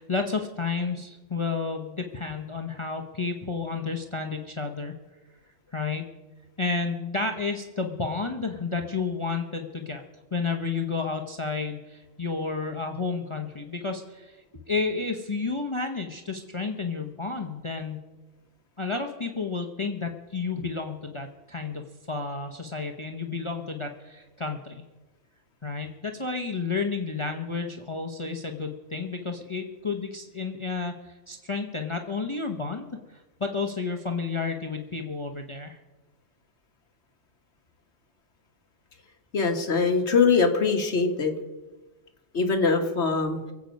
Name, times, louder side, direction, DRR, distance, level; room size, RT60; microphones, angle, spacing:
voice 1, 0.0-5.0 5.7-6.1 6.6-10.0 10.3-18.0 18.8-21.8 22.1-24.8 25.6-35.8, left 4 dB, 25° left, 5 dB, 0.8 m, -31 dB
voice 2, 39.3-41.3 42.3-43.4, left 4 dB, 55° left, 4 dB, 1.6 m, -22 dB
24.0 x 8.1 x 5.3 m, 1.2 s
omnidirectional pair, 1.4 m